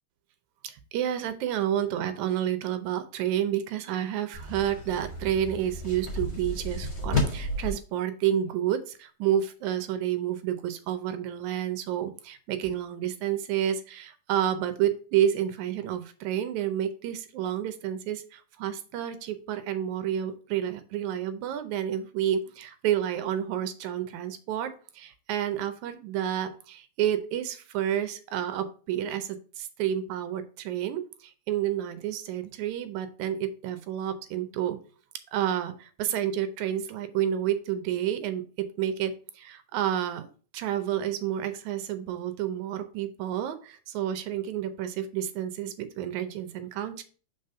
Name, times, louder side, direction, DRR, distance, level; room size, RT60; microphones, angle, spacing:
voice 1, 0.6-34.8 35.3-40.3 40.5-47.0, right 10 dB, 80° right, 10 dB, 2.1 m, -30 dB
sound 1, 4.3-7.7, left 1 dB, 20° left, 1.4 m, -32 dB
5.2 x 4.0 x 5.4 m, 0.39 s
omnidirectional pair, 3.3 m